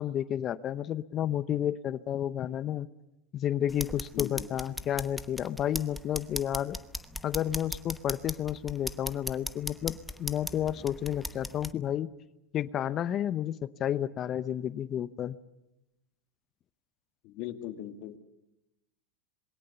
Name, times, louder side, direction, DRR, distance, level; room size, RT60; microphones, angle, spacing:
voice 1, 0.0-2.9 3.3-6.8 7.2-12.1 12.5-15.4, left 10 dB, 35° left, 16 dB, 0.8 m, -31 dB
sound 1, 3.7-11.7, left 1 dB, ahead, 1.0 m, -39 dB
voice 2, 4.1-4.5 17.2-18.2, left 12 dB, 55° left, 7 dB, 2.3 m, -39 dB
27.0 x 21.5 x 7.0 m, 0.90 s
supercardioid pair, 115°, 0 cm